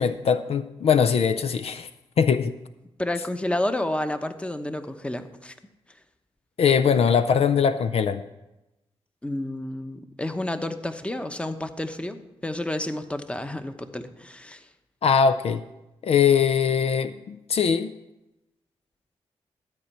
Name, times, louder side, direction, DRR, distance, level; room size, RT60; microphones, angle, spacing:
voice 1, 0.0-1.9 2.2-2.5 6.6-8.2 15.0-15.6 16.0-17.9, left 7 dB, 65° left, 11 dB, 0.5 m, -21 dB
voice 2, 3.0-5.5 9.2-14.6, left 1 dB, 10° left, 9 dB, 1.0 m, -30 dB
13.0 x 4.4 x 8.4 m, 0.97 s
cardioid pair, 60°, 11 cm